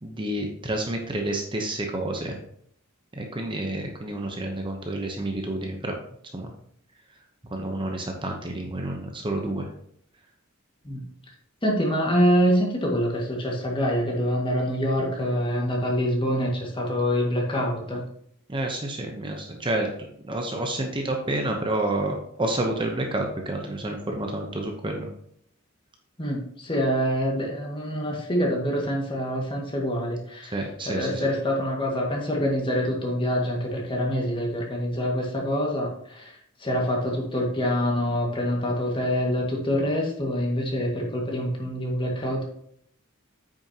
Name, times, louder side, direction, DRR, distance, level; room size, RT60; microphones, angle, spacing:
voice 1, 0.0-2.4 3.1-5.9 6.3-6.5 7.5-9.7 18.5-19.9 20.2-25.1 30.5-31.3, right 1 dB, 25° right, 2 dB, 0.9 m, -29 dB
voice 2, 11.6-18.0 26.2-30.6 30.9-42.4, equal, 25° left, -2 dB, 1.8 m, -25 dB
8.7 x 6.3 x 2.9 m, 0.68 s
head